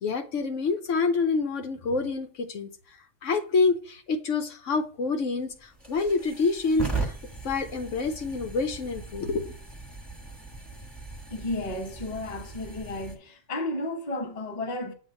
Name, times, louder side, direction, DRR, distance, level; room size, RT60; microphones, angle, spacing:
voice 1, 0.0-2.7 3.2-5.5 5.9-7.1 7.4-9.5, left 4 dB, 70° left, 1.1 m, -27 dB
sound 1, 5.5-13.2, right 3 dB, ahead, 1.4 m, -38 dB
voice 2, 11.3-14.9, left 2 dB, 35° left, 0.9 m, -33 dB
7.6 x 2.7 x 5.6 m
omnidirectional pair, 1.4 m